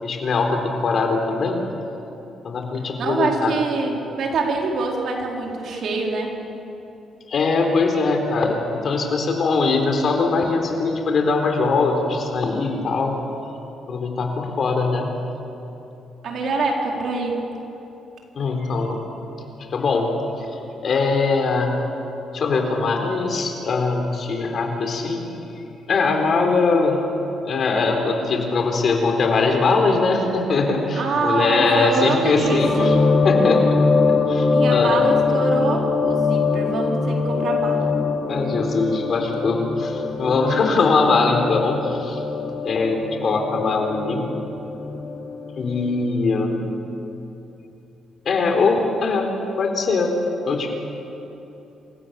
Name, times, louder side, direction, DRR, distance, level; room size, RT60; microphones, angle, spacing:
voice 1, 0.0-1.6 2.4-3.5 7.3-13.2 13.9-15.1 18.3-19.0 19.5-21.8 22.3-25.3 25.9-27.0 27.4-33.0 33.2-33.8 34.1-35.0 38.3-42.2 42.6-44.3 45.6-46.7 48.3-49.3 49.6-50.1 50.5-50.7, left 3 dB, 55° left, 3 dB, 3.9 m, -21 dB
voice 2, 3.0-6.3 16.2-17.3 30.9-32.9 34.5-37.9, right 3 dB, 65° right, 0 dB, 4.2 m, -25 dB
sound 1, 32.4-46.1, left 4 dB, 35° left, 3.5 m, -22 dB
27.0 x 15.5 x 7.1 m, 2.9 s
cardioid pair, 90°, 0 cm